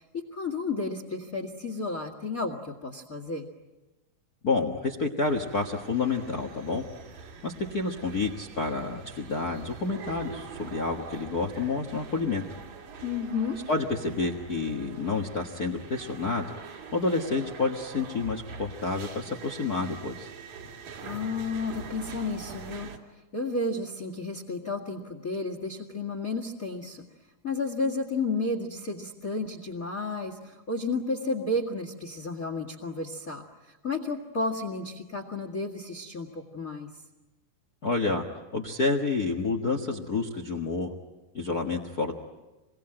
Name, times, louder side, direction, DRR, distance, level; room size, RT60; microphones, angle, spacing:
voice 1, 0.0-3.5 13.0-13.6 21.0-22.9 23.3-27.0 27.4-36.9, left 3 dB, 30° left, 3 dB, 1.7 m, -32 dB
voice 2, 4.4-6.8 7.4-12.4 13.7-16.5 16.9-20.3 37.8-38.2 38.5-40.9 41.3-42.1, left 3 dB, 65° left, 4 dB, 0.9 m, -29 dB
sound 1, 5.2-23.0, right 5 dB, 60° right, 3.3 m, -44 dB
27.5 x 22.5 x 9.0 m, 1.1 s
omnidirectional pair, 4.3 m